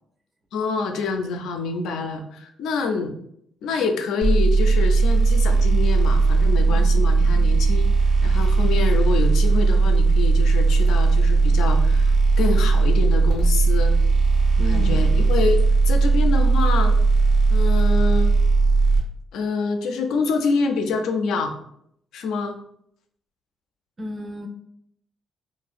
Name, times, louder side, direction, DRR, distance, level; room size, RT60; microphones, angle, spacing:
voice 1, 0.5-3.1 3.6-7.9 8.2-14.0 14.6-17.0 17.5-18.3 19.3-21.5 22.1-22.6, left 4 dB, 85° left, 5 dB, 0.3 m, -26 dB
sound 1, 4.2-19.0, right 3 dB, 80° right, 1.0 m, -17 dB
voice 2, 14.6-15.1 24.0-24.5, left 1 dB, 30° right, 4 dB, 0.4 m, -32 dB
2.5 x 2.0 x 2.4 m, 0.71 s
cardioid pair, 90°, 0 cm